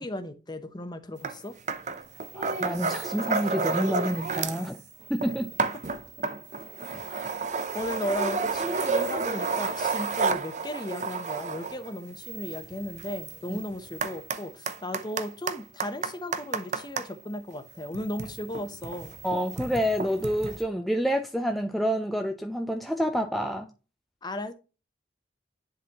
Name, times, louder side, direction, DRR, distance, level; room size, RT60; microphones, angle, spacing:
voice 1, 0.0-1.6 7.7-19.2 24.2-24.5, left 1 dB, 25° left, 0.8 m, -35 dB
sound 1, 1.2-1.4 1.7-4.7 5.0-17.1 17.9-20.6, right 4 dB, 40° right, 0.7 m, -31 dB
voice 2, 2.3-4.8 5.1-5.5 13.5-13.6 19.2-23.7, equal, ahead, 0.4 m, -28 dB
10.5 x 4.0 x 2.9 m
head